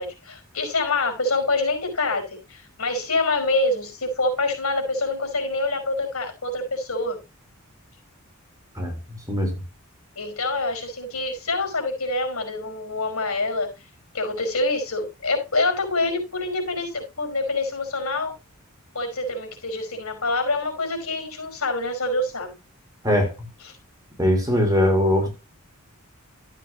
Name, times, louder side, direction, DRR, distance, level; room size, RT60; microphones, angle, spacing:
voice 1, 0.0-7.2 10.2-13.7 14.1-18.3 18.9-22.6, left 2 dB, 75° left, 5.4 m, -26 dB
voice 2, 24.2-25.3, left 1 dB, 15° right, 3.9 m, -20 dB
13.0 x 8.3 x 3.0 m
head